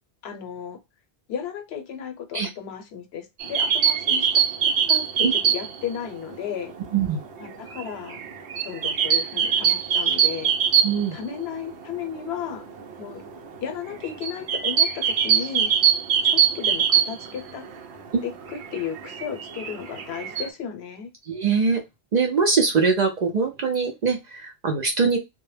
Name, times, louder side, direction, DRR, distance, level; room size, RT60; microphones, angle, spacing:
voice 1, 0.2-0.8 1.3-6.7 7.4-8.2 8.6-10.5 11.1-12.7 13.0-13.2 13.6-15.7 16.2-17.7 18.2-21.1, left 8 dB, 80° left, 0.8 m, -34 dB
sound 1, 3.4-5.9 6.1-6.2 6.5-11.4 11.7-11.8 12.0-12.3 12.8-17.8 18.2-20.5, right 7 dB, 85° right, 0.9 m, -23 dB
voice 2, 10.8-11.2 18.1-18.2 21.3-21.8 22.1-25.2, right 5 dB, 55° right, 0.5 m, -22 dB
2.1 x 2.0 x 3.1 m
omnidirectional pair, 1.1 m